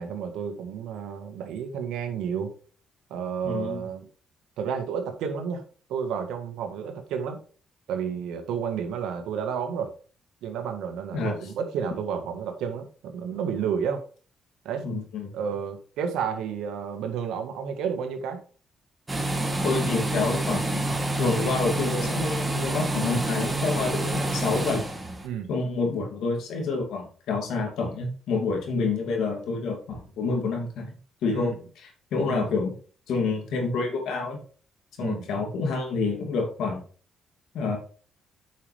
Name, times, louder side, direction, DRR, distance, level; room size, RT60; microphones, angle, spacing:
voice 1, 0.0-2.5 3.1-4.0 4.6-5.6 5.9-7.4 7.9-9.9 10.4-14.0 14.7-14.9 15.3-18.4 25.2-25.5 31.3-31.5 32.3-32.5 35.0-35.3, right 7 dB, 90° right, 6 dB, 1.7 m, -31 dB
voice 2, 3.4-3.8 11.1-11.4 14.8-15.3 19.6-24.8 25.5-30.9 31.2-32.7 33.1-34.4 35.0-36.8 37.5-37.8, left 4 dB, 80° left, 2 dB, 2.8 m, -28 dB
sound 1, 19.1-25.3, right 2 dB, 15° right, 1.9 m, -28 dB
8.4 x 6.0 x 3.5 m, 0.40 s
cardioid pair, 90°, 0 cm